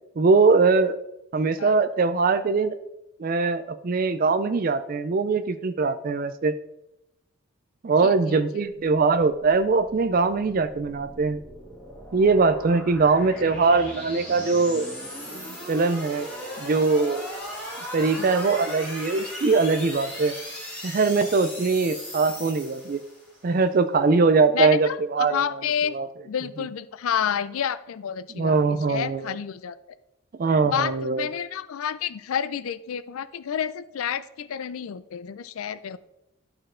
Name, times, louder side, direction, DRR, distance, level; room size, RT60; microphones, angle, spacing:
voice 1, 0.2-1.0 1.3-2.8 3.2-6.5 7.8-11.4 12.1-14.9 15.3-16.3 16.6-17.2 17.9-20.3 20.8-23.0 23.4-25.4 25.8-26.1 28.3-29.3 30.4-31.3, right 4 dB, 40° right, 10 dB, 0.4 m, -22 dB
voice 2, 8.0-8.4 18.1-18.3 24.5-26.0 26.3-29.8 30.7-36.0, left 8 dB, 75° left, 15 dB, 0.4 m, -29 dB
sound 1, 9.1-23.4, equal, 5° left, 2.1 m, -38 dB
11.5 x 4.4 x 3.7 m, 0.86 s
head